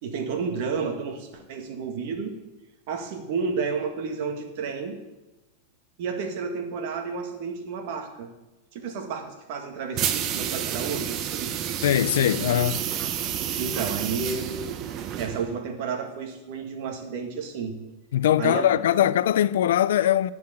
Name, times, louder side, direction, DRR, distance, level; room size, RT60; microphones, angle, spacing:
voice 1, 0.0-2.3 2.9-5.0 6.0-8.3 8.7-11.5 13.5-14.8 15.2-17.8 18.4-18.8, right 5 dB, 60° right, 1.8 m, -31 dB
sound 1, 10.0-15.6, right 10 dB, 40° right, 0.7 m, -30 dB
voice 2, 11.8-12.8 18.1-20.3, left 11 dB, 80° left, 0.4 m, -21 dB
10.5 x 4.8 x 8.1 m
supercardioid pair, 130°, 0 cm